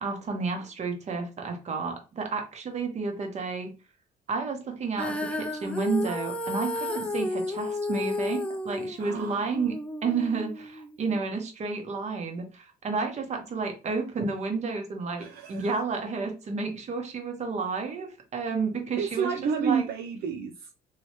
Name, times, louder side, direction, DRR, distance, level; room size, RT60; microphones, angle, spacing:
voice 1, 0.0-3.7 4.3-9.8 10.0-19.3 19.6-19.8, right 4 dB, 40° right, 1.0 m, -31 dB
Female singing, 5.0-11.2, left 2 dB, 5° left, 0.4 m, -32 dB
voice 2, 9.0-9.5 15.2-15.8 19.0-20.7, right 6 dB, 65° right, 0.4 m, -30 dB
3.1 x 3.0 x 2.9 m
cardioid pair, 110°, 17 cm